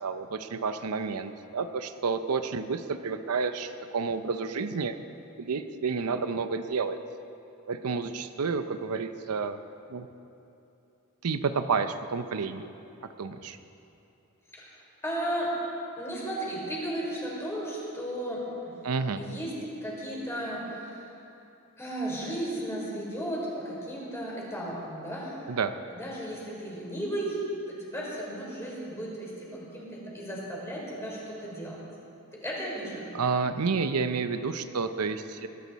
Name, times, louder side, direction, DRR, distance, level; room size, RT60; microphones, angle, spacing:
voice 1, 0.0-5.0 5.4-7.0 7.7-9.6 9.9-10.1 11.2-12.7 13.2-13.6 18.8-19.2 25.5-25.7 33.1-35.5, right 5 dB, 85° right, 10 dB, 0.6 m, -30 dB
voice 2, 15.0-15.6 16.0-18.7 19.2-19.5 19.8-21.0 21.8-25.4 25.9-27.4 27.9-31.8 32.3-33.2, right 1 dB, 10° left, -5 dB, 4.0 m, -35 dB
21.5 x 13.0 x 4.2 m, 2.9 s
head